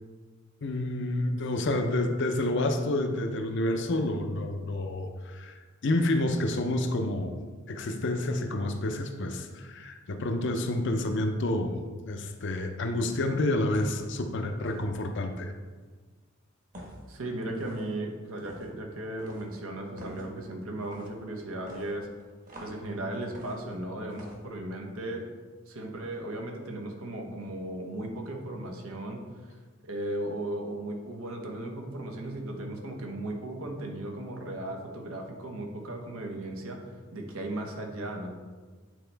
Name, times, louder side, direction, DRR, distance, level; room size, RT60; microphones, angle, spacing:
voice 1, 0.6-5.6 5.8-7.4 7.7-11.7 12.1-15.5, left 1 dB, 60° left, 5 dB, 0.6 m, -29 dB
sound 1, 12.9-13.2 13.7-14.0 14.6-14.9 16.7-17.1 17.5-17.9 18.4-18.7 19.2-19.5 20.0-20.3 20.8-21.1 21.7-22.8 23.3-23.8 24.1-24.4, right 1 dB, 40° right, 1.3 m, -47 dB
voice 2, 17.1-22.1 22.6-25.2 25.7-29.2 29.8-36.8 37.1-38.3, right 1 dB, 85° right, 2 dB, 1.0 m, -36 dB
9.1 x 4.2 x 3.4 m, 1.5 s
head